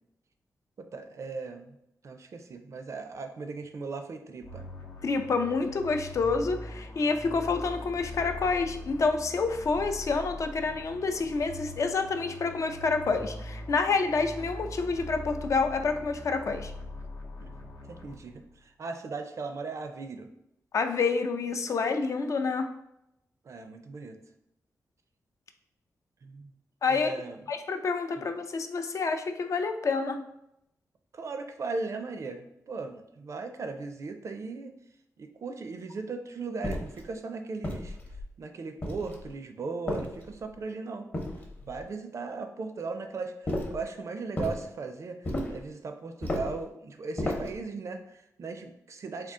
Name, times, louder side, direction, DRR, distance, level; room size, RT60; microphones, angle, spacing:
voice 1, 0.8-1.8 2.0-4.6 17.4-17.5 17.9-20.3 23.4-24.2 26.2-26.5 26.9-27.4 28.2-28.3 31.1-34.7 35.2-38.0 38.4-41.1 41.6-49.3, right 4 dB, 55° right, 7 dB, 0.4 m, -38 dB
sound 1, 4.4-18.5, left 1 dB, 75° left, 0.7 m, -42 dB
voice 2, 5.0-16.7 20.7-22.7 26.8-27.1 27.5-30.2, left 4 dB, 55° left, 7 dB, 0.4 m, -28 dB
sound 2, 36.6-37.0 37.6-38.3 38.8-39.3 39.9-40.5 41.1-41.8 43.5-43.8 44.4-44.6 45.2-45.6 46.2-46.6 47.2-47.6, left 1 dB, 30° left, 0.8 m, -33 dB
3.7 x 2.4 x 3.6 m, 0.80 s
wide cardioid pair, 95°, 6 cm